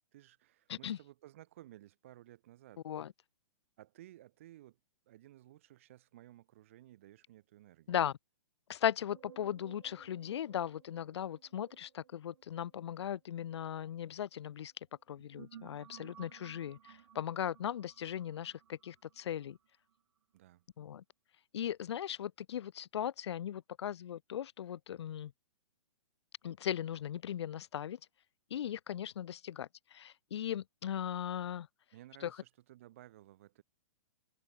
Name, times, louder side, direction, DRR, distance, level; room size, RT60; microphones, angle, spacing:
voice 1, 0.1-2.8 3.8-4.8 5.1-8.0 20.3-20.7 31.9-33.6, right 14 dB, 25° right, 0.5 m, -57 dB
voice 2, 8.7-14.7 15.1-19.6 20.8-21.0 21.5-25.3 26.4-28.0 28.5-31.7 32.2-32.4, left 10 dB, 50° left, 0.6 m, -38 dB
sound 1, 9.1-14.4 15.0-19.9, right 9 dB, 60° right, 1.1 m, -59 dB
hypercardioid pair, 180°, 18 cm